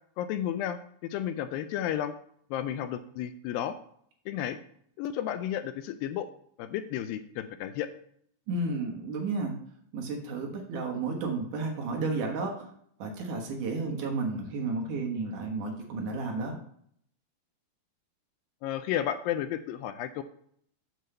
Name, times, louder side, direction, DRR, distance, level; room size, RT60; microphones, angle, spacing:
voice 1, 0.2-2.2 2.5-3.8 4.3-4.6 5.0-6.3 6.6-7.9 18.6-20.2, left 10 dB, 80° left, 10 dB, 2.2 m, -32 dB
voice 2, 8.5-9.6 9.9-12.7 13.0-16.6, right 3 dB, 65° right, 2 dB, 2.6 m, -32 dB
7.7 x 4.6 x 6.7 m, 0.65 s
omnidirectional pair, 4.3 m